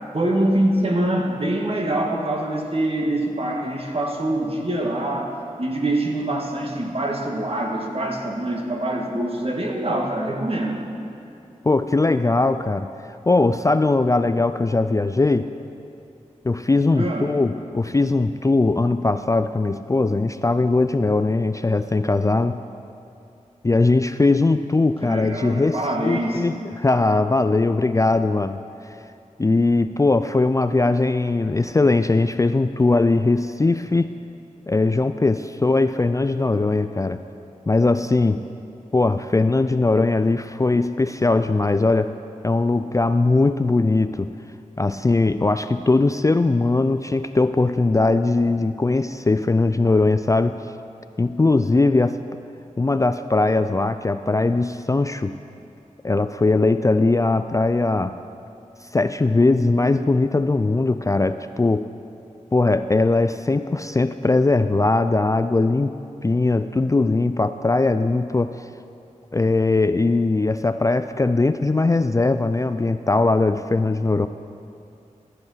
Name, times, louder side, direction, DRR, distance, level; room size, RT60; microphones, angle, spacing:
voice 1, 0.1-10.8 16.9-17.3 25.0-26.5, right 1 dB, 45° right, 1 dB, 1.8 m, -24 dB
voice 2, 11.6-12.9 13.3-15.5 16.4-22.6 23.6-28.6 29.4-34.1 34.7-37.2 37.7-38.4 38.9-42.1 42.4-44.3 44.8-50.6 51.2-52.2 52.8-55.3 56.0-58.2 58.9-61.9 62.5-66.0 66.2-68.6 69.3-74.3, left 3 dB, 25° left, 10 dB, 0.4 m, -20 dB
14.0 x 7.7 x 5.8 m, 2.6 s
cardioid pair, 45°, 14 cm